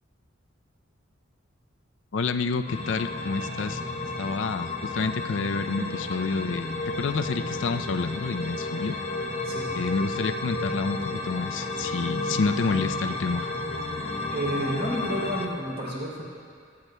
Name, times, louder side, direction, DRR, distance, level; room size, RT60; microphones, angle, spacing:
voice 1, 2.1-3.8 4.2-9.0 9.7-13.5, left 4 dB, 65° left, 9 dB, 0.4 m, -29 dB
sound 1, 2.7-15.5, left 2 dB, 35° left, 0.8 m, -32 dB
voice 2, 9.4-9.8 14.3-16.2, equal, 50° right, -3 dB, 3.2 m, -31 dB
26.0 x 9.5 x 2.2 m, 2.2 s
head